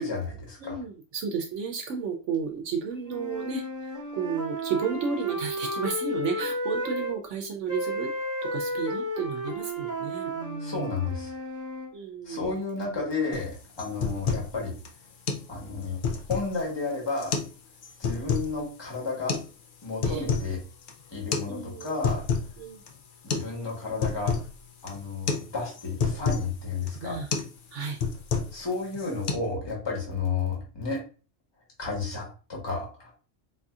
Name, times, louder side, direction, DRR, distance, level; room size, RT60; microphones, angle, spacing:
voice 1, 0.0-0.8 10.6-11.3 12.2-14.8 15.5-16.0 16.3-17.3 18.0-19.4 19.8-20.6 21.1-22.2 23.2-24.3 24.8-27.2 28.5-31.0 31.8-33.1, left 4 dB, 20° left, -2 dB, 1.1 m, -32 dB
voice 2, 0.6-8.1 8.4-10.9 11.9-12.6 20.0-20.2 21.5-22.1 22.6-22.8 27.0-27.3 27.7-28.0, right 5 dB, 75° right, 3 dB, 0.9 m, -33 dB
sound 1, 3.0-7.1 7.7-11.9, equal, 20° right, 0.8 m, -33 dB
sound 2, 13.3-13.5 13.8-14.5 14.8-14.9 15.3-15.5 15.8-16.6 17.2-17.5 17.8-18.5 19.3-19.5 19.8-20.5 20.8-20.9 21.3-21.5 21.8-22.5 22.9-23.0 23.3-23.5 23.8-24.5 24.9-25.0 25.3-25.5 25.7-26.5 26.9-27.0 27.3-27.5 27.8-28.6 28.9-29.3, left 5 dB, 60° left, 0.6 m, -29 dB
4.0 x 2.6 x 2.3 m, 0.36 s
omnidirectional pair, 1.3 m